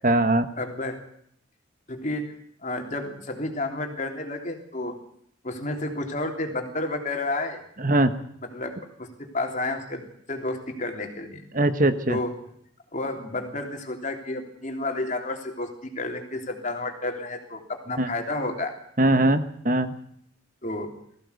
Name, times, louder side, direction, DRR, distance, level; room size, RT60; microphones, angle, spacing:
voice 1, 0.0-0.5 7.8-8.1 11.5-12.2 18.0-18.1 19.0-20.0, right 1 dB, 40° right, 10 dB, 1.2 m, -21 dB
voice 2, 0.6-1.0 1.9-2.3 2.6-5.0 5.4-7.6 8.5-11.4 12.1-12.3 12.9-18.7 20.6-20.9, left 2 dB, 35° left, 4 dB, 3.4 m, -31 dB
20.0 x 16.0 x 8.2 m, 0.68 s
head